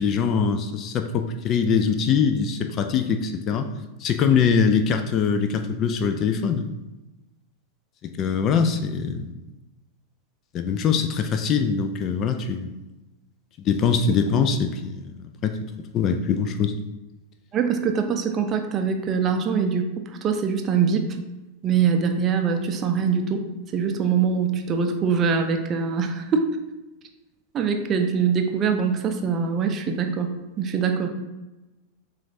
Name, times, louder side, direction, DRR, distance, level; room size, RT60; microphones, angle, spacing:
voice 1, 0.0-3.7 4.0-6.7 8.0-9.4 10.5-12.7 13.6-15.1 15.4-15.5 15.8-16.7, left 6 dB, 35° left, 7 dB, 0.4 m, -23 dB
voice 2, 17.5-19.9 20.2-21.2 21.6-23.5 23.7-26.5 27.5-31.1, right 6 dB, 30° right, 5 dB, 0.5 m, -23 dB
7.2 x 2.5 x 2.7 m, 1.0 s
figure-of-eight pair, 90°, 0 cm